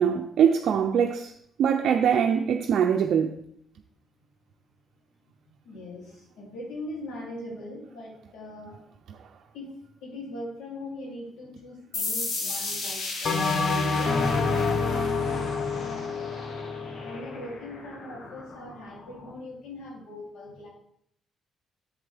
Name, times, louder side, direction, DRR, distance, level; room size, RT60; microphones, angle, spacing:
voice 1, 0.0-1.3 1.6-3.4, right 8 dB, 70° right, 3 dB, 0.5 m, -23 dB
voice 2, 5.6-8.8 9.5-9.7 10.0-13.5 13.9-14.2 14.6-15.5 17.0-20.7, left 1 dB, 85° left, -3 dB, 3.0 m, -41 dB
sound 1, 11.9-19.3, left 3 dB, 70° left, 1.8 m, -35 dB
Bell, 13.2-17.8, left 4 dB, 55° left, 1.2 m, -27 dB
7.9 x 7.3 x 3.5 m, 0.71 s
cardioid pair, 90°, 0 cm